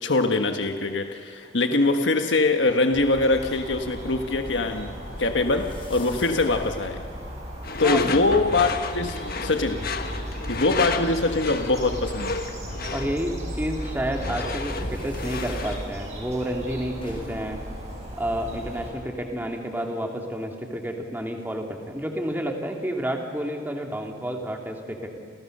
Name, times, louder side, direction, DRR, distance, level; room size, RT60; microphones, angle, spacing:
voice 1, 0.0-4.9 5.2-7.0 7.8-9.9 10.5-12.4, left 2 dB, 75° left, 5 dB, 1.4 m, -23 dB
River Ambience during Summer, 2.9-18.9, equal, 40° right, 7.2 m, -36 dB
sound 1, 4.0-19.9, equal, 30° left, 6.1 m, -47 dB
Door / Screech, 7.6-15.9, left 4 dB, 55° left, 1.5 m, -32 dB
voice 2, 7.8-8.1 12.9-17.6 18.2-25.2, equal, 10° right, 2 dB, 2.9 m, -30 dB
29.5 x 29.5 x 6.7 m, 2.3 s
head